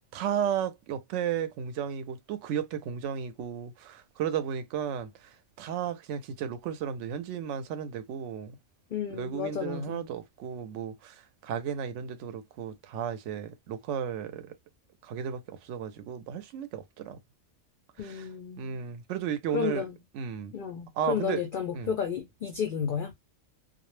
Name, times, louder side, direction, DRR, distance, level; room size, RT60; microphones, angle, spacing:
voice 1, 0.1-8.6 9.1-14.5 15.0-17.2 18.0-18.3 18.6-19.8 20.1-20.5 21.0-21.4 21.7-21.9, right 8 dB, 70° right, 0.8 m, -34 dB
voice 2, 8.9-10.1 18.0-18.9 19.5-20.0 20.5-23.1, left 7 dB, 65° left, 0.5 m, -32 dB
2.3 x 2.0 x 3.0 m
omnidirectional pair, 1.4 m